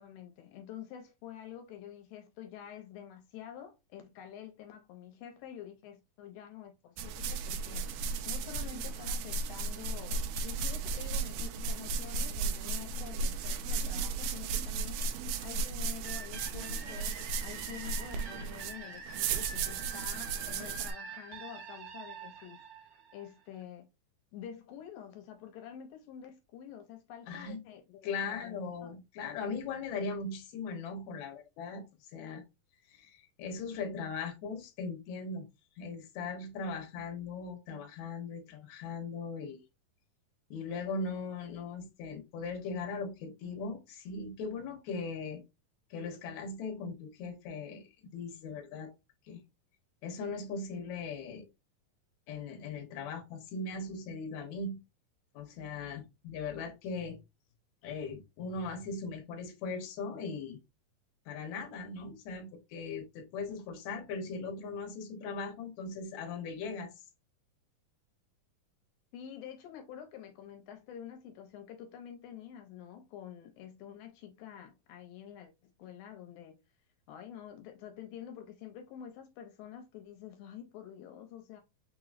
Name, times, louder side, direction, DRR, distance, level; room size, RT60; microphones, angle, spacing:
voice 1, 0.0-22.7 23.1-23.9 24.3-29.0 69.1-76.6 77.1-81.6, left 9 dB, 80° left, 2.3 m, -48 dB
sound 1, 7.0-20.9, right 4 dB, 80° right, 2.1 m, -35 dB
sound 2, 16.0-23.6, right 4 dB, 60° right, 1.4 m, -46 dB
voice 2, 27.3-27.6 28.0-31.8 32.1-32.4 32.9-35.5 35.8-39.6 40.5-45.4 45.9-48.9 49.3-49.4 50.0-51.5 52.3-54.8 55.3-57.2 57.8-60.6 61.3-66.9, left 4 dB, 65° left, 2.1 m, -39 dB
6.2 x 2.9 x 2.4 m
omnidirectional pair, 4.1 m